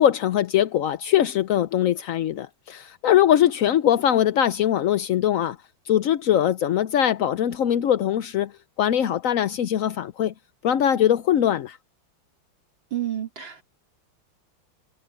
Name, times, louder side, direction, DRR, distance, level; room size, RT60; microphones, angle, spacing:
voice 1, 0.0-5.6 5.9-8.5 8.8-10.3 10.6-11.8, left 10 dB, 70° left, 0.8 m, -21 dB
voice 2, 12.9-13.6, right 12 dB, 65° right, 4.6 m, -29 dB
omnidirectional pair, 2.2 m